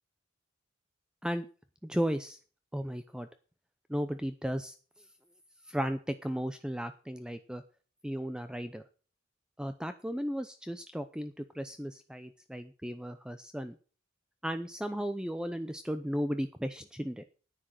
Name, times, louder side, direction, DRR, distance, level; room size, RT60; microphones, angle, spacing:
voice 1, 1.8-2.4 2.7-3.3 3.9-4.7 5.7-7.6 8.0-8.8 9.6-13.7 14.4-17.3, equal, 5° right, 10 dB, 0.6 m, -35 dB
10.0 x 10.0 x 6.5 m, 0.39 s
head